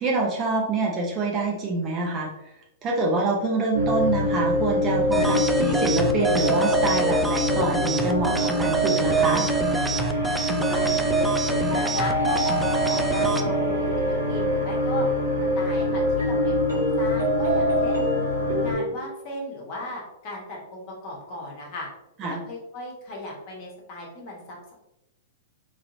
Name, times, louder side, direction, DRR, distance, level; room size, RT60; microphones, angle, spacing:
voice 1, 0.0-2.3 2.8-9.5 22.2-22.4, right 3 dB, 30° right, -2 dB, 0.7 m, -26 dB
sound 1, 3.7-18.7, equal, 85° right, 1.1 m, -24 dB
sound 2, 5.1-13.4, right 2 dB, 5° right, 0.3 m, -28 dB
voice 2, 10.6-15.0 15.5-18.1 18.6-21.9 22.2-24.7, left 2 dB, 45° left, -2 dB, 1.2 m, -37 dB
3.1 x 2.9 x 2.6 m, 0.88 s
figure-of-eight pair, 105°, 0 cm